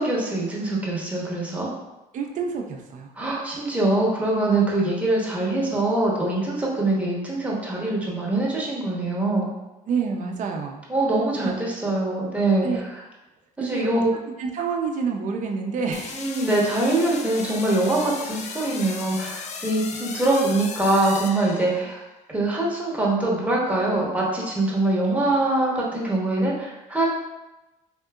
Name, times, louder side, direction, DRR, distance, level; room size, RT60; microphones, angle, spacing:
voice 1, 0.0-1.7 3.2-9.5 10.9-12.7 13.6-14.1 16.2-22.0 22.3-27.1, right 2 dB, 10° right, -4 dB, 0.9 m, -23 dB
voice 2, 2.1-3.1 9.9-10.8 11.4-11.5 12.6-12.8 13.6-14.0 14.4-16.3, right 5 dB, 50° right, 2 dB, 0.5 m, -28 dB
sound 1, 15.9-22.1, left 5 dB, 45° left, 0.4 m, -36 dB
3.6 x 2.6 x 2.3 m, 1.0 s
cardioid pair, 110°, 17 cm